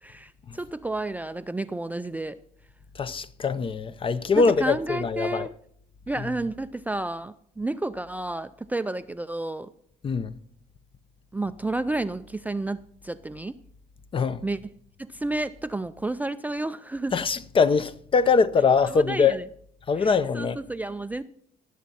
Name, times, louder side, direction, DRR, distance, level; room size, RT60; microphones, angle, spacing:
voice 1, 0.0-2.4 4.3-5.5 6.1-9.7 11.3-13.6 14.4-14.6 15.0-17.1 18.9-19.5 20.0-21.2, right 2 dB, 10° right, 0.4 m, -31 dB
voice 2, 3.0-5.5 10.0-10.3 14.1-14.4 17.1-19.4 19.9-20.6, left 5 dB, 30° left, 0.6 m, -23 dB
19.0 x 7.2 x 4.2 m
cardioid pair, 110°, 17 cm